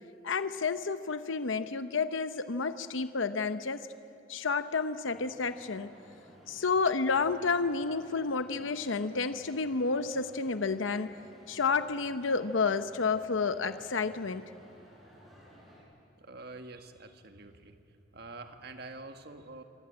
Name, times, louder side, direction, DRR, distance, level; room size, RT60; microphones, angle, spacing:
voice 1, 0.2-3.9 4.3-5.9 6.5-11.2 11.5-14.5, left 4 dB, 85° left, 11 dB, 0.8 m, -30 dB
sound 1, 5.0-15.8, equal, ahead, 7.9 m, -56 dB
voice 2, 16.2-17.8 18.1-19.6, right 3 dB, 55° right, 6 dB, 1.8 m, -46 dB
27.0 x 24.5 x 8.9 m, 2.7 s
head